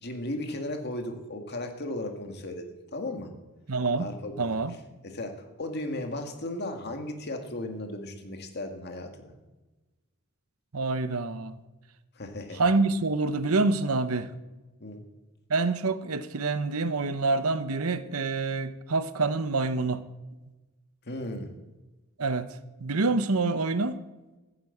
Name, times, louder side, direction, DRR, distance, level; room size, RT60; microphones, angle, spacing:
voice 1, 0.0-2.7 2.9-3.3 4.0-4.6 5.0-9.3 12.2-12.6 14.8-15.0 21.1-21.5, left 1 dB, 50° left, 2.1 m, -35 dB
voice 2, 3.7-4.1 4.4-4.7 10.7-11.6 12.5-14.3 15.5-20.0 22.2-22.5 22.8-24.0, right 3 dB, 80° right, 0.9 m, -26 dB
14.5 x 8.4 x 8.5 m
head